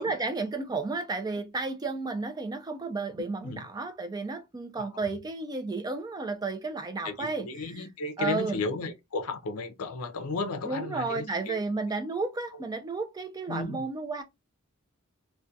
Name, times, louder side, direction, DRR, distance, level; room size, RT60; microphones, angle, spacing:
voice 1, 0.0-7.9 8.2-8.6 10.6-14.2, right 3 dB, 20° right, 0.3 m, -32 dB
voice 2, 7.0-11.6 13.5-13.9, left 3 dB, 75° left, 0.5 m, -34 dB
2.3 x 2.2 x 2.6 m
head